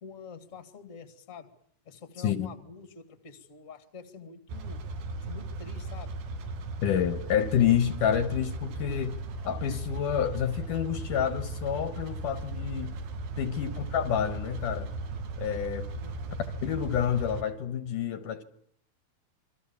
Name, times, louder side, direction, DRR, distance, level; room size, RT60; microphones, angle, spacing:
voice 1, 0.0-1.5 1.8-4.8 5.3-6.1 13.5-13.9 16.0-16.4, left 5 dB, 25° left, 1.9 m, -47 dB
sound 1, 4.5-17.4, right 2 dB, 70° right, 3.6 m, -37 dB
voice 2, 6.8-9.2 9.4-13.0 13.4-14.9 15.4-15.9 16.6-18.4, left 9 dB, 70° left, 2.5 m, -28 dB
27.5 x 23.5 x 7.1 m
omnidirectional pair, 4.3 m